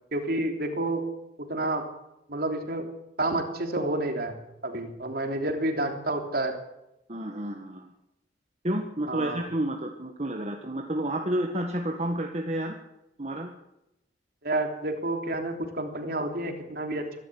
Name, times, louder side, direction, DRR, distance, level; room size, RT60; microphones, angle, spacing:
voice 1, 0.1-1.1 1.4-1.9 2.3-2.8 3.2-6.6 9.1-9.4 14.4-17.2, right 2 dB, 55° right, 4 dB, 3.4 m, -29 dB
voice 2, 7.1-7.9 8.6-12.8 13.2-13.5, right 1 dB, 35° right, 2 dB, 1.7 m, -30 dB
23.5 x 12.5 x 9.4 m, 0.87 s
head